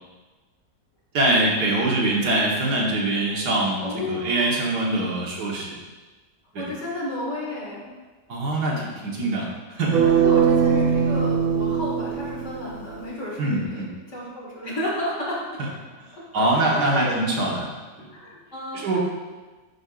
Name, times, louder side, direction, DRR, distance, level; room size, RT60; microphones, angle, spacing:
voice 1, 1.1-5.8 6.5-6.7 8.3-10.2 13.4-13.9 16.3-17.7 18.0-18.1 18.7-19.0, right 2 dB, 80° right, -3 dB, 1.8 m, -23 dB
voice 2, 3.8-4.4 4.8-5.1 6.6-7.9 10.0-15.6 16.1-17.4 18.1-19.0, left 1 dB, 45° left, -5 dB, 2.1 m, -32 dB
sound 1, 9.9-13.0, right 7 dB, 60° right, 1.3 m, -21 dB
10.5 x 5.3 x 2.4 m, 1.3 s
omnidirectional pair, 1.7 m